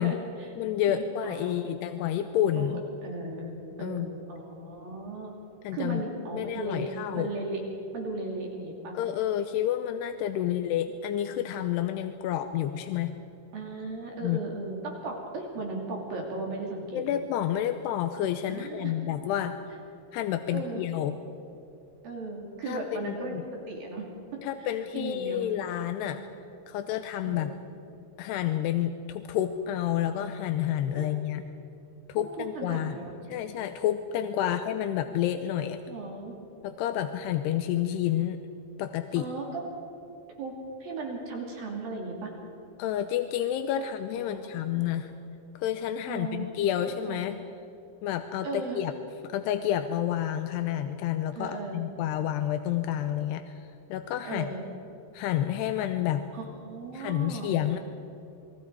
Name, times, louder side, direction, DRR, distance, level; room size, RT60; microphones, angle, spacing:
voice 1, 0.0-0.5 0.9-1.7 2.6-2.7 3.0-3.5 3.8-5.3 5.7-6.9 7.1-7.6 7.9-8.9 10.4-10.5 13.5-17.0 18.5-18.9 20.5-20.8 22.0-23.4 23.7-24.0 24.9-25.4 26.0-26.3 27.2-27.6 30.9-31.1 32.2-33.1 34.4-34.5 35.9-36.3 39.2-39.6 40.4-40.5 40.8-42.3 44.1-44.8 46.1-46.5 47.0-47.2 48.4-48.8 51.3-51.8 54.3-54.6 56.3-57.6, right 3 dB, 60° right, -1 dB, 4.6 m, -36 dB
voice 2, 0.6-2.8 3.8-4.1 5.6-6.0 6.3-7.3 8.9-13.1 14.2-14.4 16.9-19.6 20.1-21.1 22.7-23.4 24.4-26.2 26.7-27.5 28.2-31.4 32.1-33.0 33.3-35.8 36.6-38.4 38.8-39.3 42.8-45.1 45.6-47.4 48.0-48.9 49.2-53.5 53.9-54.5 55.1-56.3 56.9-57.8, left 11 dB, 85° left, 8 dB, 2.9 m, -29 dB
29.0 x 22.0 x 4.8 m, 2.8 s
omnidirectional pair, 4.7 m